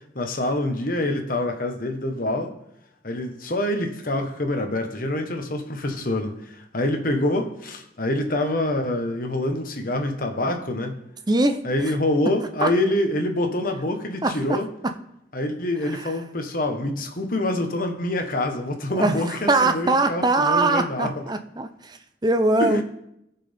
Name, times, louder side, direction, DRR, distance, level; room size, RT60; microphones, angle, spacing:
voice 1, 0.1-2.5 3.0-11.0 11.6-14.7 15.3-21.1 22.6-22.8, left 1 dB, 50° left, 5 dB, 1.3 m, -26 dB
voice 2, 11.3-11.9 12.6-12.7 14.2-14.9 15.8-16.1 18.9-22.8, right 2 dB, 20° right, 8 dB, 0.6 m, -22 dB
17.5 x 5.9 x 3.6 m, 0.78 s
head